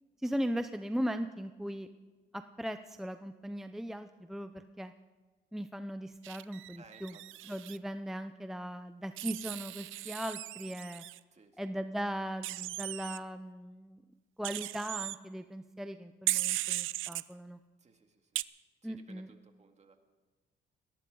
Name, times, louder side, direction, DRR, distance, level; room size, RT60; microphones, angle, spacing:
voice 1, 0.2-1.9 2.3-4.9 5.5-7.1 7.5-11.0 11.6-14.0 14.4-17.6 18.8-19.3, equal, ahead, 9 dB, 0.6 m, -38 dB
Wild animals, 6.2-7.8 9.2-11.2 12.4-13.2 14.4-15.2 16.3-17.2 18.4-18.5, right 17 dB, 85° right, 0.5 m, -37 dB
voice 2, 6.8-7.5 11.3-12.0 17.8-18.4 18.8-20.0, right 4 dB, 35° right, 5 dB, 2.2 m, -60 dB
21.0 x 17.5 x 3.9 m, 1.3 s
cardioid pair, 90°, 20 cm